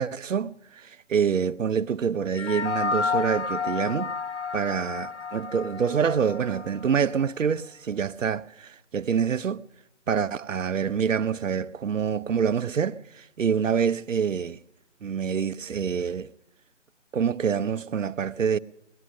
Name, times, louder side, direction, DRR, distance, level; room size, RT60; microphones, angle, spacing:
voice 1, 0.0-4.1 4.5-9.6 10.1-14.6 15.0-16.3 17.1-18.6, right 7 dB, 85° right, 0.7 m, -26 dB
sound 1, 2.3-7.0, left 5 dB, 65° left, 0.8 m, -31 dB
18.5 x 11.5 x 6.2 m
figure-of-eight pair, 165°, 37 cm